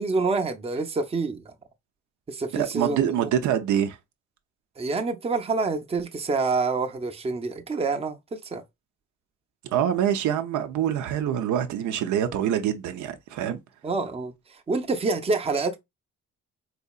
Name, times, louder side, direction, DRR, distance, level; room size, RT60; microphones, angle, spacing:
voice 1, 0.0-1.5 2.3-3.0 4.8-8.6 13.8-15.8, right 3 dB, 20° right, 0.6 m, -27 dB
voice 2, 2.5-4.0 9.7-13.6, right 10 dB, 75° right, 0.7 m, -25 dB
4.2 x 2.7 x 2.3 m
cardioid pair, 90°, 30 cm